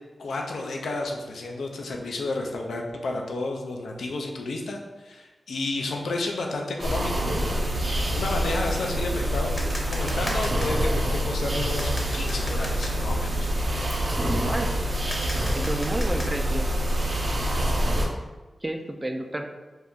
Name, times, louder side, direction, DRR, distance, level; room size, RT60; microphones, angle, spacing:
voice 1, 0.2-7.8 8.1-13.5, left 2 dB, 90° left, 1 dB, 0.4 m, -31 dB
sound 1, 6.8-18.1, right 1 dB, 55° right, 0.7 m, -26 dB
sound 2, 9.6-17.9, left 1 dB, 35° left, 0.8 m, -39 dB
voice 2, 14.3-14.8 15.5-16.7 18.6-19.5, right 1 dB, 25° right, 4 dB, 0.3 m, -30 dB
2.7 x 2.3 x 3.5 m, 1.2 s
cardioid pair, 45°, 0 cm